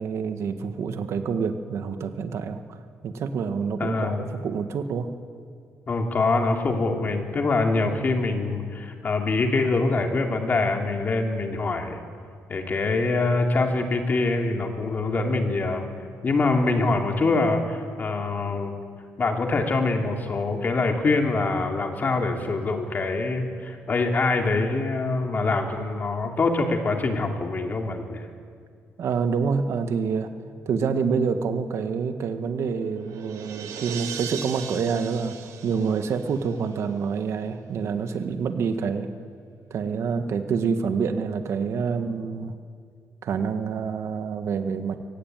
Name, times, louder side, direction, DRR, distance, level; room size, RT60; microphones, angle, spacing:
voice 1, 0.0-2.8 3.0-5.1 29.0-30.3 30.7-39.1 39.7-42.6 43.2-45.0, right 5 dB, 60° right, 7 dB, 1.7 m, -27 dB
voice 2, 3.8-4.3 5.9-12.0 12.5-15.9 16.2-18.8 19.2-28.3, left 3 dB, 30° left, 3 dB, 2.9 m, -24 dB
sound 1, 32.5-37.0, right 8 dB, 80° right, 2.3 m, -39 dB
24.5 x 19.0 x 9.2 m, 2.2 s
cardioid pair, 140°, 6 cm